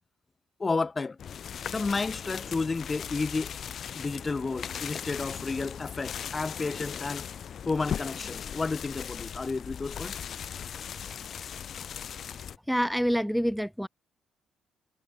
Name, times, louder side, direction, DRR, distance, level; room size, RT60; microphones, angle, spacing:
voice 1, 0.6-1.2 1.7-3.5 4.0-7.2 7.7-10.2, left 3 dB, 25° left, 1.8 m, -31 dB
sound 1, 1.2-12.6, left 8 dB, 55° left, 4.6 m, -38 dB
voice 2, 12.7-13.9, equal, ahead, 2.0 m, -26 dB
cardioid pair, 90°, 0 cm